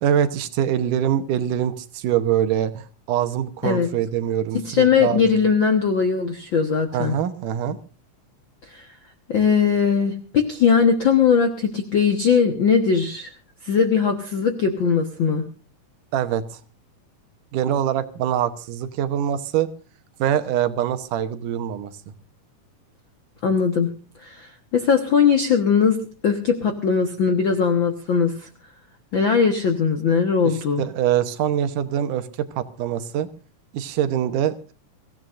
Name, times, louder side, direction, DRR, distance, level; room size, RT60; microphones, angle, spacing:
voice 1, 0.0-5.2 6.9-7.8 16.1-16.6 17.5-19.7 20.2-22.1 30.4-33.3 33.7-34.7, right 10 dB, 80° right, 10 dB, 2.5 m, -24 dB
voice 2, 4.6-7.1 8.7-8.9 9.3-13.3 13.6-15.5 23.4-23.9 24.2-26.0 26.2-28.5 29.1-30.8, left 6 dB, 50° left, 6 dB, 1.5 m, -20 dB
24.5 x 15.5 x 2.5 m, 0.36 s
omnidirectional pair, 3.7 m